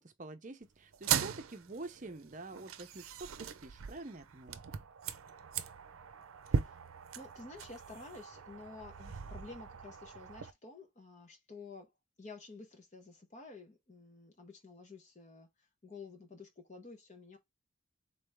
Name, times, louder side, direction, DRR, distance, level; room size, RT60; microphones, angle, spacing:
voice 1, 0.0-4.6, right 2 dB, 40° right, 0.7 m, -47 dB
sound 1, 0.9-10.5, right 7 dB, 85° right, 0.5 m, -39 dB
voice 2, 6.4-6.8 7.1-11.9 12.2-17.4, left 3 dB, 35° left, 0.9 m, -51 dB
3.9 x 3.4 x 3.4 m
head